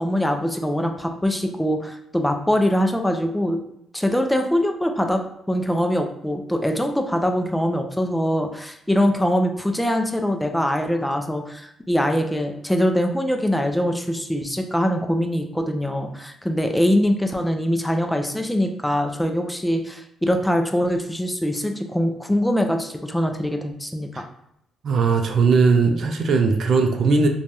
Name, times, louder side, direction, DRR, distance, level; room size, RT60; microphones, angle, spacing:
voice 1, 0.0-3.6 3.9-5.2 5.5-24.1, equal, 5° left, 4 dB, 0.4 m, -23 dB
voice 2, 24.8-27.3, right 4 dB, 60° right, 4 dB, 0.4 m, -18 dB
3.2 x 2.2 x 2.6 m, 0.78 s
cardioid pair, 90°, 0 cm